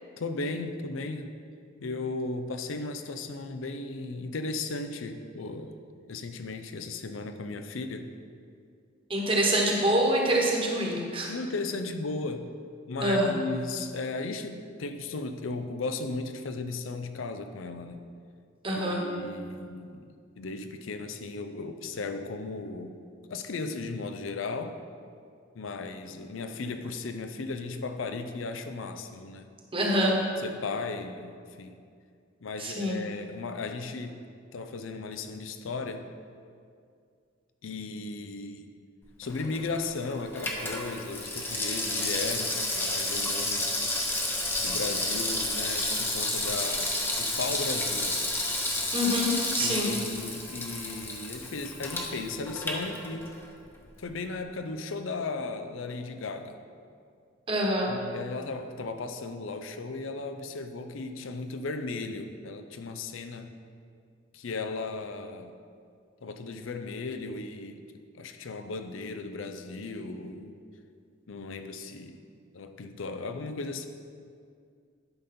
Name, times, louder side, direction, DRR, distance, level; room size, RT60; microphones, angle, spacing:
voice 1, 0.2-1.3 1.8-5.8 6.1-8.1 11.3-12.5 12.9-18.0 18.9-20.1 20.4-23.0 23.3-24.8 25.5-29.5 30.4-31.3 31.6-31.8 32.4-34.2 34.5-36.1 37.6-38.7 39.2-43.7 44.6-48.2 49.6-53.3 54.0-56.6 57.9-63.5 64.3-65.5 66.2-67.8 68.2-70.5 71.3-72.2 72.5-73.9, left 3 dB, 90° left, 8 dB, 0.6 m, -36 dB
voice 2, 9.1-11.3 13.0-13.3 18.6-19.0 29.7-30.2 32.6-33.0 48.9-49.9 57.5-57.9, equal, 30° right, -1 dB, 1.2 m, -25 dB
Water tap faucet / Sink (filling or washing), 39.2-53.5 53.8-53.9, left 1 dB, 10° left, 0.8 m, -31 dB
11.0 x 5.2 x 4.3 m, 2.2 s
head